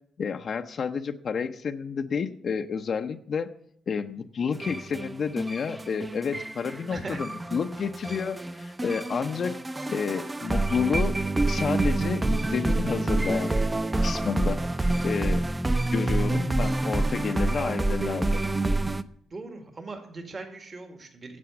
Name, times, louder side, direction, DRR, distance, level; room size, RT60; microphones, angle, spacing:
voice 1, 0.2-3.5 3.9-9.6 9.9-11.1 11.5-13.5 14.0-15.5 15.9-18.4, left 6 dB, 60° left, 7 dB, 0.6 m, -30 dB
sound 1, 4.5-19.0, right 2 dB, 20° right, 0.6 m, -27 dB
voice 2, 6.9-7.3 19.3-21.4, right 3 dB, 45° right, 5 dB, 1.9 m, -39 dB
9.7 x 7.6 x 7.0 m, 0.70 s
supercardioid pair, 55°, 0 cm